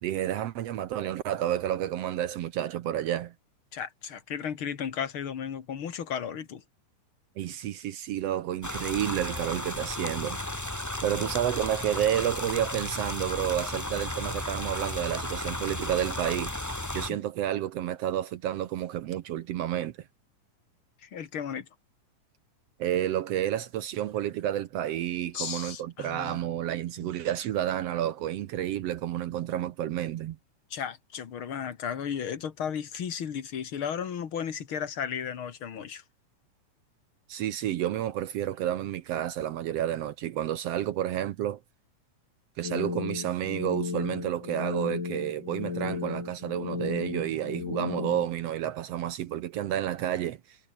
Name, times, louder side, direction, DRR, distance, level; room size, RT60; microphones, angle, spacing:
voice 1, 0.0-3.3 7.4-10.4 11.0-16.5 16.9-19.9 22.8-30.4 37.3-41.6 42.6-50.6, right 11 dB, 70° right, 1.6 m, -30 dB
voice 2, 3.7-6.6 17.1-17.2 21.0-21.7 25.3-26.4 27.0-27.1 30.7-36.0, left 8 dB, 45° left, 2.3 m, -34 dB
sound 1, 8.6-17.1, left 1 dB, 5° left, 1.8 m, -34 dB
sound 2, 42.6-48.3, left 5 dB, 75° left, 6.8 m, -34 dB
omnidirectional pair, 3.7 m